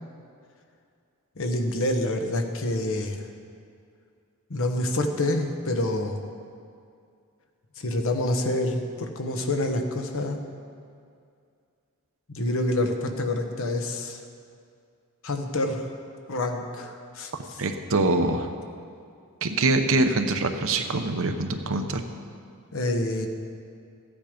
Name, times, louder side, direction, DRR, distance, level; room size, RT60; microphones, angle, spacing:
voice 1, 1.4-3.3 4.5-6.2 7.8-10.4 12.3-14.2 15.2-15.9 16.3-17.6 22.7-23.3, left 1 dB, 65° left, 4 dB, 1.1 m, -27 dB
voice 2, 17.6-18.5 19.4-22.0, right 2 dB, 65° right, 6 dB, 0.9 m, -24 dB
14.5 x 9.4 x 5.1 m, 2.3 s
head